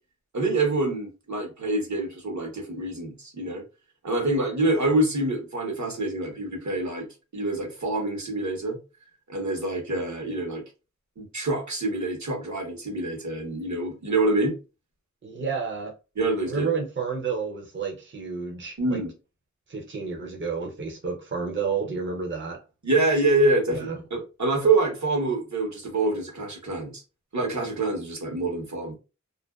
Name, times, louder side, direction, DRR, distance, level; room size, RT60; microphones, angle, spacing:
voice 1, 0.3-3.6 4.0-7.1 7.3-8.8 9.3-10.6 11.2-14.5 16.2-16.7 18.8-19.1 22.8-27.0 27.3-28.9, right 2 dB, 70° right, 1.0 m, -26 dB
voice 2, 15.2-15.9 16.4-19.0 19.7-22.6 23.7-24.0, right 5 dB, 40° right, 0.6 m, -30 dB
2.5 x 2.2 x 2.2 m
wide cardioid pair, 55°, 29 cm